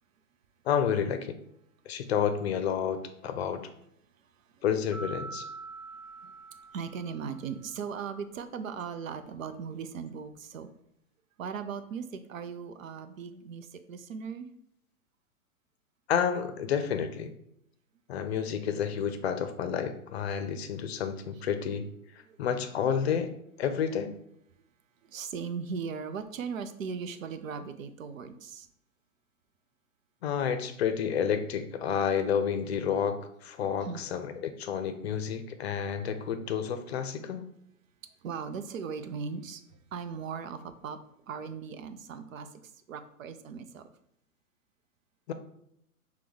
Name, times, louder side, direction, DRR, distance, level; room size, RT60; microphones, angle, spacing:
voice 1, 0.6-1.4 1.9-3.6 4.6-5.5 16.1-17.3 18.1-21.9 22.4-23.3 23.6-24.1 30.2-37.4 45.3-45.4, left 7 dB, 45° left, 9 dB, 0.6 m, -30 dB
voice 2, 4.2-4.6 6.2-10.7 11.4-14.5 22.3-22.4 25.0-28.7 33.8-34.0 38.2-39.6 39.9-41.0 41.3-43.9, right 6 dB, 65° right, 10 dB, 0.6 m, -38 dB
sound 1, 4.9-7.7, right 3 dB, 5° left, 0.3 m, -44 dB
5.9 x 2.3 x 3.5 m, 0.75 s
figure-of-eight pair, 115°, 44 cm